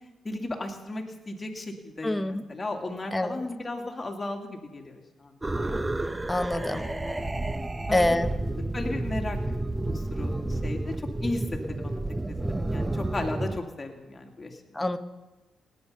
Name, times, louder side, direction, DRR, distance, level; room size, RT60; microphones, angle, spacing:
voice 1, 0.2-5.8 6.5-7.3 7.8-8.2 8.7-9.4 9.8-12.0 12.3-14.6, left 2 dB, 30° left, 3 dB, 2.3 m, -35 dB
voice 2, 2.0-2.4 3.1-3.4 6.3-6.8 7.9-8.3 14.7-15.0, left 1 dB, 10° left, 10 dB, 1.0 m, -25 dB
sound 1, 5.4-13.6, right 2 dB, 15° right, 0.7 m, -31 dB
18.0 x 9.1 x 5.6 m, 1.1 s
cardioid pair, 70°, 0 cm